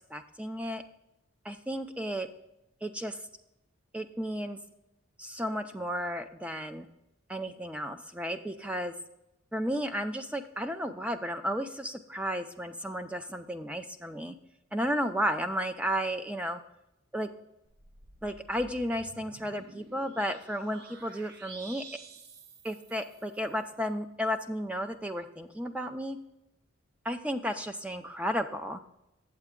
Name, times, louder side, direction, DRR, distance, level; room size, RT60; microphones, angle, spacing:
voice 1, 0.1-0.8 1.4-2.3 2.8-3.2 3.9-4.6 5.2-6.9 7.3-8.9 9.5-14.4 14.7-16.6 17.1-17.3 18.2-21.8 22.6-26.2 27.0-28.8, equal, 5° right, 8 dB, 0.4 m, -33 dB
sound 1, 17.7-23.5, right 3 dB, 50° right, 0.6 m, -51 dB
8.2 x 7.8 x 3.6 m, 0.87 s
head